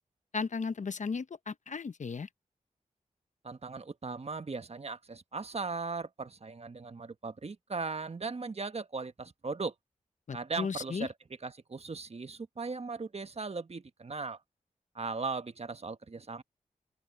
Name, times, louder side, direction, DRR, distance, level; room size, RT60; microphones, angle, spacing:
voice 1, 0.3-2.3 10.3-11.1, left 5 dB, 60° left, 0.9 m, -35 dB
voice 2, 3.4-9.7 10.3-11.1 11.4-14.4 14.9-16.4, right 4 dB, 50° right, 1.3 m, -38 dB
open air
cardioid pair, 40°, 14 cm